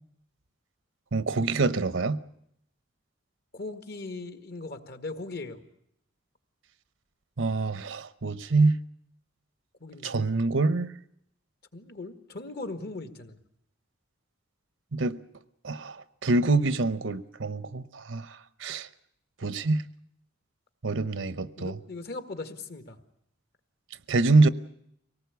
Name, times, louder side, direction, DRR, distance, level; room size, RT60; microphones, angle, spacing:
voice 1, 1.1-2.2 7.4-8.8 10.0-10.9 14.9-15.2 15.6-18.9 19.4-19.8 20.8-21.8 24.1-24.5, right 3 dB, 70° right, 0.8 m, -25 dB
voice 2, 3.5-5.6 9.8-10.4 11.7-13.4 21.6-23.0, left 3 dB, 55° left, 1.7 m, -39 dB
24.5 x 18.5 x 8.2 m
head